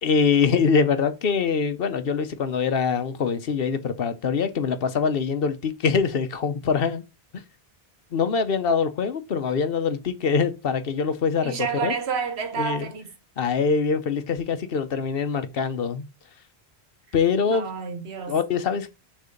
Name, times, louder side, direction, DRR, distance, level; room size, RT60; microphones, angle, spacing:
voice 1, 0.0-7.0 8.1-11.5 11.8-11.9 12.6-12.9 13.4-16.1 17.1-17.7 18.3-18.9, left 5 dB, 65° left, 1.0 m, -24 dB
voice 2, 11.4-13.1 17.5-18.4, right 6 dB, 80° right, 1.3 m, -29 dB
6.7 x 3.3 x 5.1 m
omnidirectional pair, 1.1 m